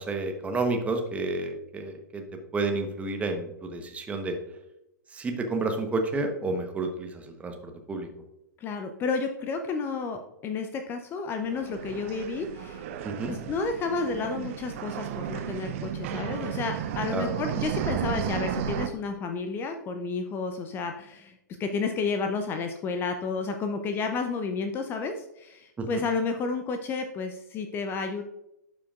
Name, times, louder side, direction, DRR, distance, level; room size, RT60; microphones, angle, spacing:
voice 1, 0.0-2.2 2.5-4.4 5.1-8.1 13.0-13.4 17.1-17.3 25.8-26.1, right 3 dB, 15° right, 5 dB, 1.0 m, -30 dB
voice 2, 8.6-12.9 13.3-28.2, left 4 dB, 20° left, 6 dB, 0.5 m, -31 dB
sound 1, 11.4-18.9, right 9 dB, 45° right, 0.6 m, -33 dB
12.0 x 5.1 x 2.4 m, 0.87 s
figure-of-eight pair, 105°, 10 cm